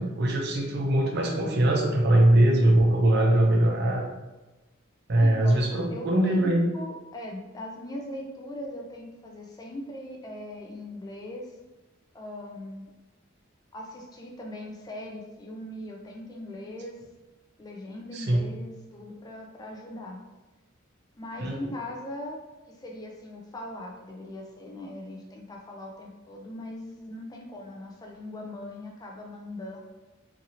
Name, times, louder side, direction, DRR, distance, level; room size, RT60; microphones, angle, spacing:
voice 1, 0.0-4.0 5.1-6.6 18.1-18.4 21.4-21.5, right 1 dB, 55° right, 0 dB, 0.6 m, -21 dB
voice 2, 5.1-11.6 12.1-12.8 13.7-17.0 17.6-20.2 21.1-22.4 22.7-29.8, left 1 dB, 20° left, -1 dB, 0.4 m, -40 dB
2.7 x 2.6 x 2.8 m, 1.1 s
head